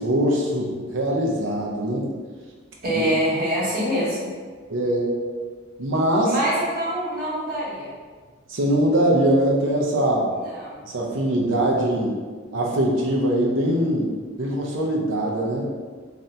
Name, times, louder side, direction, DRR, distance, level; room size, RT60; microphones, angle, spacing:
voice 1, 0.0-2.1 4.7-5.2 5.8-6.3 8.5-10.3 10.8-12.1 12.5-14.1 14.4-15.7, right 1 dB, 85° right, -1 dB, 0.6 m, -22 dB
voice 2, 2.8-4.3 6.2-7.9 10.3-10.8, equal, 50° right, -7 dB, 1.1 m, -25 dB
3.3 x 2.6 x 2.7 m, 1.5 s
head